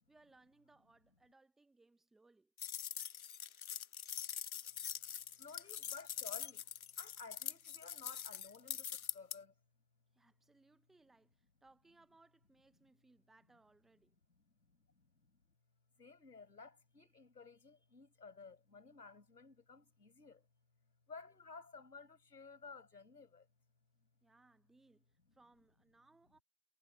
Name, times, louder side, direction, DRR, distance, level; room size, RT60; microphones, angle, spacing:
voice 1, 0.0-2.5 10.1-14.1 24.2-26.4, right 2 dB, ahead, 0.7 m, -68 dB
sound 1, 2.6-9.4, left 8 dB, 60° left, 0.8 m, -44 dB
voice 2, 5.4-6.7 7.0-9.5 15.0-15.1 16.0-20.5 21.1-23.5, left 4 dB, 80° left, 5.7 m, -55 dB
figure-of-eight pair, 140°, 47 cm